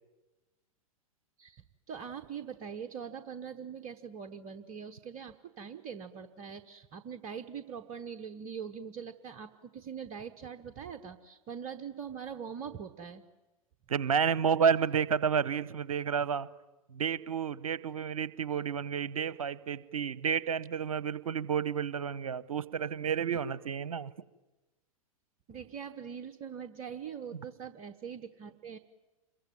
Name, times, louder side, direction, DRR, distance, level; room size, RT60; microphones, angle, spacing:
voice 1, 1.4-13.2 25.5-28.8, right 7 dB, 35° right, 8 dB, 1.2 m, -42 dB
voice 2, 13.9-16.5 16.9-24.1, right 7 dB, 70° right, 19 dB, 1.0 m, -30 dB
27.0 x 22.5 x 9.4 m, 1.1 s
figure-of-eight pair, 100°, 18 cm